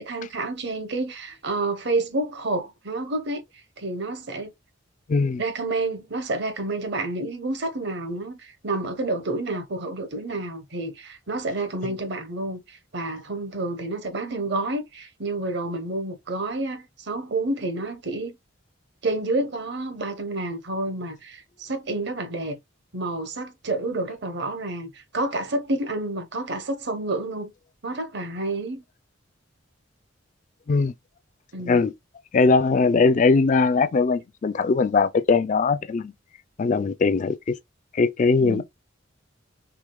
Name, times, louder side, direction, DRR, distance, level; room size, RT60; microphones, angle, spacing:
voice 1, 0.0-3.4 3.8-4.5 5.4-18.4 19.0-22.6 22.9-27.5 27.8-28.8 31.5-31.9 38.4-38.6, right 2 dB, 55° right, 0.9 m, -29 dB
voice 2, 5.1-5.4 30.7-30.9 31.7-31.9 32.3-36.1 36.6-37.6 37.9-38.6, left 4 dB, 40° left, 0.3 m, -20 dB
4.9 x 3.6 x 2.3 m
head